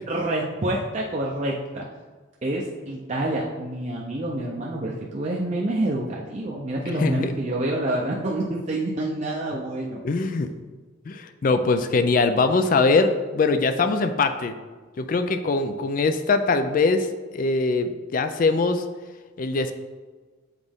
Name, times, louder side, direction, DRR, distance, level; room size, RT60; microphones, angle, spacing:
voice 1, 0.1-1.9 2.4-10.0, right 1 dB, 35° right, -3 dB, 0.5 m, -27 dB
voice 2, 6.9-7.3 10.0-10.5 11.1-14.5 15.0-17.1 17.3-18.8 19.4-19.7, left 3 dB, 40° left, 9 dB, 0.3 m, -22 dB
7.3 x 3.9 x 3.6 m, 1.4 s
head